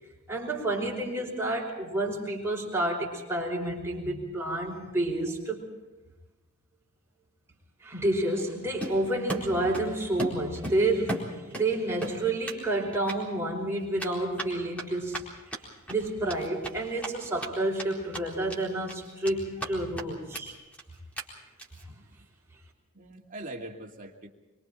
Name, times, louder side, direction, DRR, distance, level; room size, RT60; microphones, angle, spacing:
voice 1, 0.3-5.6 7.8-15.2 15.9-20.5, right 1 dB, 10° right, -2 dB, 5.5 m, -29 dB
voice 2, 4.0-4.5 21.8-22.2 22.9-24.3, right 1 dB, 40° right, 0 dB, 2.5 m, -43 dB
Run, 8.8-9.9 10.2-11.7 12.0-12.6 12.9-13.2 14.0-17.5 17.8-17.9 18.1-18.6 18.9-19.7 20.0-20.1 20.3-20.4 20.7-20.8 21.2-21.3 21.6-21.8, right 1 dB, 5° left, 4.2 m, -36 dB
26.5 x 24.5 x 4.5 m, 1.1 s
head